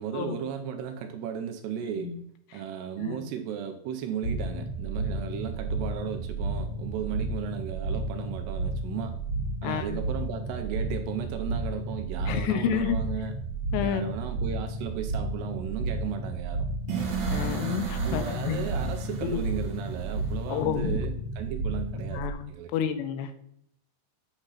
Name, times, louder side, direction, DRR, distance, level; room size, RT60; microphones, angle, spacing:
voice 1, 0.0-2.1 2.5-9.2 9.6-13.4 13.8-16.7 18.0-22.7, right 8 dB, 80° right, 6 dB, 2.5 m, -35 dB
sound 1, 4.2-22.3, right 2 dB, 65° left, 1.6 m, -32 dB
voice 2, 9.6-10.0 12.3-13.0 13.7-14.1 17.3-18.7 19.3-19.4 20.5-21.0 22.1-23.3, left 9 dB, 80° left, 9 dB, 2.6 m, -30 dB
sound 2, 16.9-20.8, right 6 dB, 60° right, 2.1 m, -36 dB
8.9 x 3.6 x 5.6 m, 0.71 s
omnidirectional pair, 5.1 m